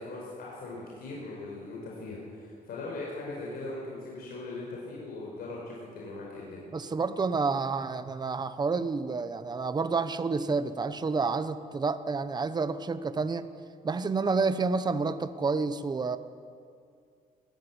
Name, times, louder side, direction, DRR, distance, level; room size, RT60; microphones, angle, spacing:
voice 1, 0.0-6.6, left 2 dB, 80° left, -4 dB, 5.4 m, -40 dB
voice 2, 6.7-13.5 13.8-16.2, right 4 dB, 25° right, 12 dB, 1.0 m, -29 dB
21.5 x 14.5 x 9.9 m, 2.3 s
cardioid pair, 120°, 15 cm